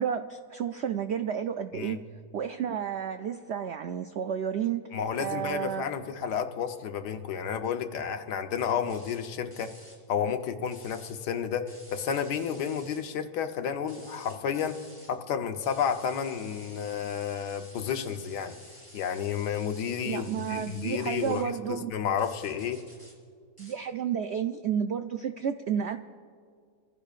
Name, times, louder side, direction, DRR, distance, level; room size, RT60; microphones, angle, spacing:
voice 1, 0.0-2.0 2.3-4.9 5.2-5.9 20.0-22.0 23.6-26.0, right 8 dB, 80° right, 8 dB, 0.6 m, -31 dB
voice 2, 4.9-9.7 10.1-14.8 15.1-18.6 18.9-22.8, left 7 dB, 85° left, 7 dB, 1.5 m, -31 dB
sound 1, 8.9-9.2 9.5-10.0 10.7-11.1 11.7-13.0 13.8-15.1 15.6-21.4 22.2-23.1 23.6-23.8, equal, 10° right, 3.6 m, -52 dB
27.5 x 15.5 x 2.5 m, 2.1 s
omnidirectional pair, 1.7 m